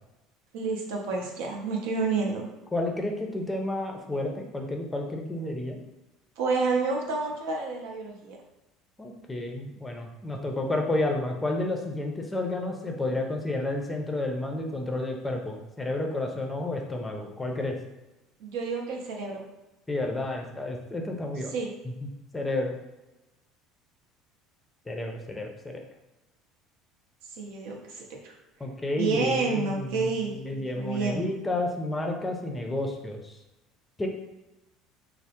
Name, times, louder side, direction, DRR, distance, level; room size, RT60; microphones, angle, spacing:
voice 1, 0.5-2.4 6.4-8.4 18.4-19.4 21.5-21.7 27.4-28.3 29.0-31.2, right 4 dB, 80° right, 0 dB, 0.6 m, -29 dB
voice 2, 2.7-5.8 9.0-17.8 19.9-21.5 21.8-22.7 24.9-25.8 28.6-33.3 34.0-34.1, left 2 dB, 15° left, 2 dB, 0.5 m, -31 dB
3.2 x 2.0 x 2.8 m, 0.99 s
supercardioid pair, 105°, 0 cm